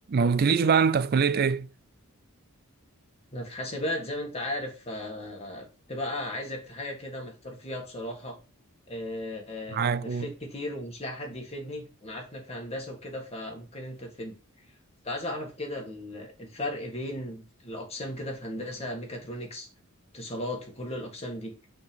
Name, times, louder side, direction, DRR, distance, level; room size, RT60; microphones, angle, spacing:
voice 1, 0.1-1.7 9.7-10.3, right 6 dB, 45° right, 0.4 m, -23 dB
voice 2, 3.3-8.4 8.9-14.3 15.0-19.7 20.1-21.5, left 1 dB, 30° left, 1.9 m, -36 dB
6.0 x 3.9 x 5.1 m
head